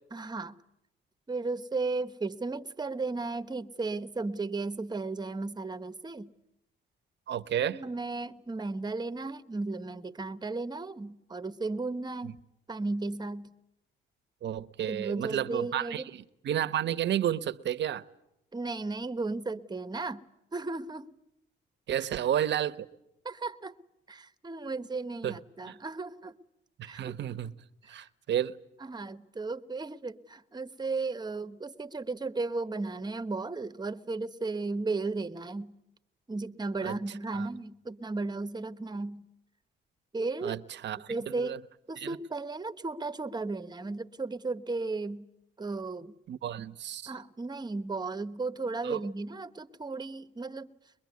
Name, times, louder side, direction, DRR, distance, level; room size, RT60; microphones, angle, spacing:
voice 1, 0.1-0.5 1.3-6.3 7.6-12.3 12.7-13.5 14.9-16.1 18.5-20.2 20.5-21.1 22.0-22.1 23.2-23.7 24.1-26.3 26.9-27.1 27.8-28.0 28.8-35.8 36.3-39.3 40.1-40.6 41.1-41.6 41.9-45.3 45.6-46.1 47.1-50.7, right 3 dB, 20° right, 1.2 m, -35 dB
voice 2, 7.3-7.8 12.2-12.3 14.4-18.0 21.9-22.9 25.2-25.4 25.7-25.8 26.8-27.5 27.9-28.6 36.8-37.0 37.3-37.5 40.4-41.6 42.0-42.2 46.3-47.1 48.8-49.0, right 10 dB, 65° right, 1.1 m, -32 dB
22.5 x 22.5 x 9.5 m
cardioid pair, 90°, 20 cm